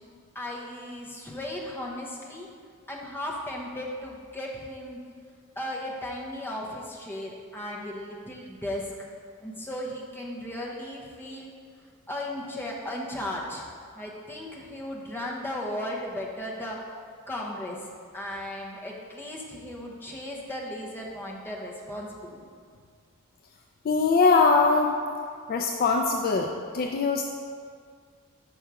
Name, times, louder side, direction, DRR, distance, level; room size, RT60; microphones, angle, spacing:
voice 1, 0.3-2.5 2.9-5.0 5.6-9.1 9.4-11.5 12.1-13.6 14.0-16.8 17.3-17.8 18.1-22.4, left 1 dB, 10° left, -3 dB, 0.8 m, -36 dB
voice 2, 23.9-24.9 25.5-27.2, left 4 dB, 40° left, 2 dB, 0.3 m, -22 dB
5.8 x 5.4 x 4.7 m, 2.1 s
head